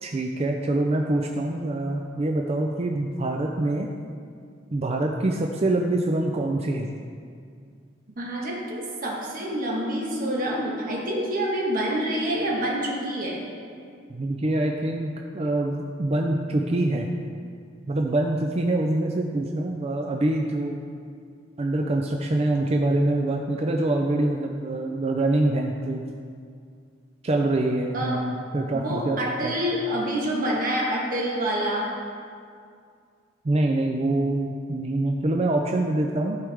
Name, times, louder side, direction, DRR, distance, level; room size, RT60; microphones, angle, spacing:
voice 1, 0.0-3.9 4.7-6.9 14.1-17.1 17.9-20.8 21.6-26.0 27.2-29.5 33.4-36.4, right 2 dB, 35° right, 1 dB, 0.4 m, -25 dB
voice 2, 8.2-13.4 27.9-28.2 28.7-31.9, equal, 50° right, -3 dB, 1.5 m, -27 dB
12.5 x 4.9 x 3.5 m, 2.2 s
head